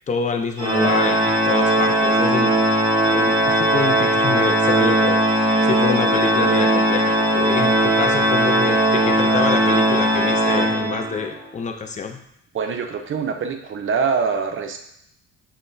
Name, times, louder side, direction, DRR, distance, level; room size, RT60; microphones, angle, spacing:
voice 1, 0.1-2.6 3.0-12.2, left 5 dB, 25° left, 5 dB, 0.4 m, -27 dB
Organ, 0.6-11.3, right 1 dB, 15° right, 1.2 m, -18 dB
voice 2, 12.5-14.8, right 5 dB, 40° right, 5 dB, 0.5 m, -24 dB
5.7 x 2.2 x 2.6 m, 0.77 s
cardioid pair, 90°, 30 cm